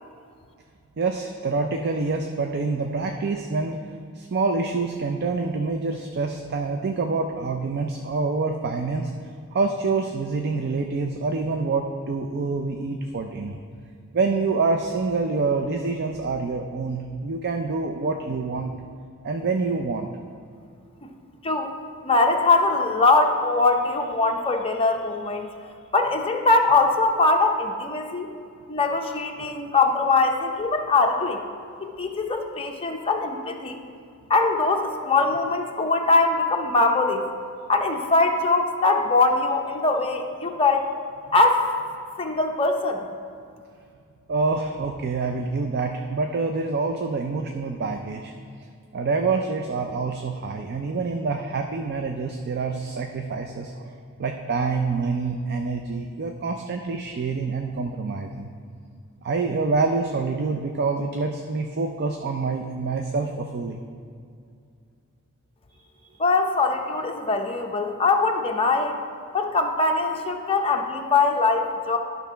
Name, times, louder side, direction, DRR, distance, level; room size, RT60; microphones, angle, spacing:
voice 1, 1.0-3.8 4.1-9.1 9.5-13.6 14.1-18.7 19.2-20.1 44.3-48.3 48.9-58.5 59.2-63.8, right 4 dB, 50° right, 4 dB, 0.4 m, -26 dB
voice 2, 22.0-25.5 25.9-28.3 28.7-31.4 31.8-33.8 34.3-37.2 37.7-40.9 41.3-41.7 42.2-43.1 66.2-69.0 69.3-72.0, left 3 dB, 25° left, 3 dB, 0.7 m, -22 dB
11.5 x 4.1 x 5.6 m, 2.3 s
head